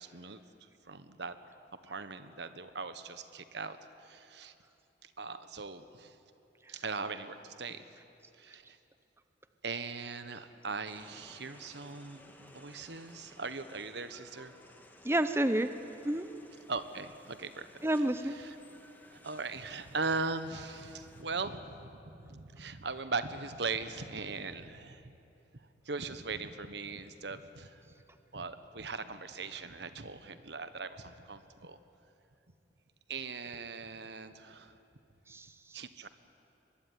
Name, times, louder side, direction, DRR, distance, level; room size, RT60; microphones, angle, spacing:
voice 1, 0.0-1.4 1.8-4.5 5.0-6.2 6.7-7.9 8.4-8.8 9.6-14.5 16.7-17.8 18.4-18.5 19.1-25.1 25.6-27.9 28.3-31.8 33.1-34.8 35.7-36.1, right 4 dB, 65° right, 11 dB, 1.3 m, -40 dB
sound 1, 10.8-21.2, left 1 dB, 10° left, 2.2 m, -57 dB
voice 2, 15.0-15.7 16.0-16.3 17.8-18.4 35.3-35.8, right 1 dB, 15° right, 10 dB, 0.7 m, -30 dB
23.0 x 22.0 x 9.7 m, 2.9 s
head